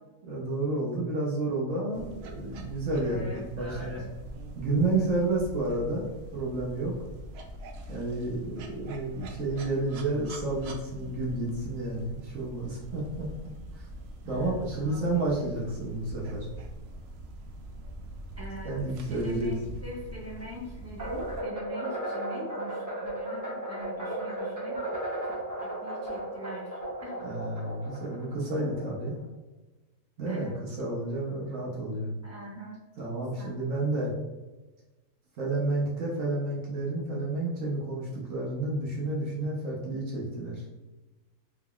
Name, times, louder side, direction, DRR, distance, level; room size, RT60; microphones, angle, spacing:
voice 1, 0.2-4.0 4.5-7.0 7.9-13.3 13.8-13.9 14.3-16.5 18.6-19.7 27.2-29.2 30.2-32.1 33.0-34.1 35.4-40.6, right 2 dB, 60° right, -4 dB, 1.1 m, -30 dB
sound 1, 1.9-21.4, right 1 dB, 80° right, 0.5 m, -43 dB
voice 2, 2.9-4.1 14.2-15.5 18.4-24.8 25.2-25.3 25.6-27.2 30.2-30.6 32.2-32.8 33.4-33.5, equal, 15° right, -5 dB, 0.7 m, -43 dB
sound 2, 21.0-29.3, right 1 dB, 30° right, 0.3 m, -35 dB
3.8 x 3.5 x 2.3 m, 1.1 s
omnidirectional pair, 1.6 m